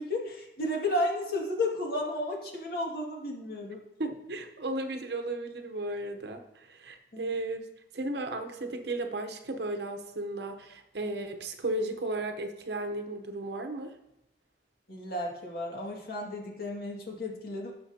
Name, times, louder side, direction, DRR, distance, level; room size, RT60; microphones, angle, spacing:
voice 1, 0.0-3.8 7.1-7.3 14.9-17.7, left 1 dB, 55° left, -1 dB, 2.2 m, -33 dB
voice 2, 4.0-7.7 7.9-13.9, right 2 dB, 65° right, 6 dB, 0.9 m, -35 dB
17.5 x 6.2 x 2.9 m, 0.87 s
head